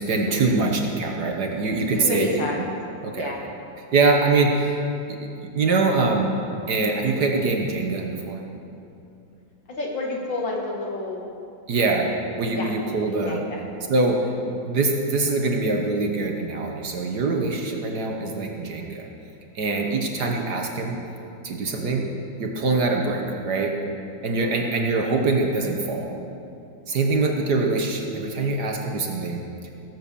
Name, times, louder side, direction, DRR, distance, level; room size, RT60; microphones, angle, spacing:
voice 1, 0.0-2.3 3.0-3.3 3.9-4.8 5.1-6.3 6.7-8.4 11.7-12.1 12.4-13.4 13.9-19.1 19.5-21.0 21.4-22.1 22.4-23.8 24.2-26.1 26.9-29.4, right 3 dB, 55° right, 2 dB, 1.5 m, -23 dB
voice 2, 1.9-2.6 3.2-3.4 9.7-11.3 12.6-13.6 17.9-18.0 19.8-20.4 21.7-22.1 24.2-24.6, left 2 dB, 65° left, -1 dB, 2.6 m, -31 dB
18.0 x 7.7 x 6.9 m, 2.7 s
omnidirectional pair, 2.3 m